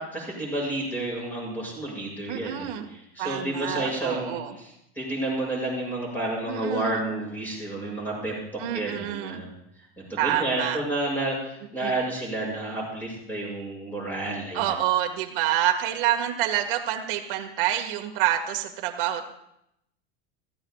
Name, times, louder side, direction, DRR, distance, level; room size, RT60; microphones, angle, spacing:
voice 1, 0.0-9.5 10.0-14.7, right 2 dB, 5° left, -3 dB, 6.6 m, -31 dB
voice 2, 2.3-4.5 6.5-7.1 8.6-9.4 10.2-10.8 11.8-12.0 14.5-19.2, right 12 dB, 60° right, 3 dB, 1.9 m, -27 dB
23.0 x 15.5 x 2.4 m, 0.79 s
supercardioid pair, 160°, 30 cm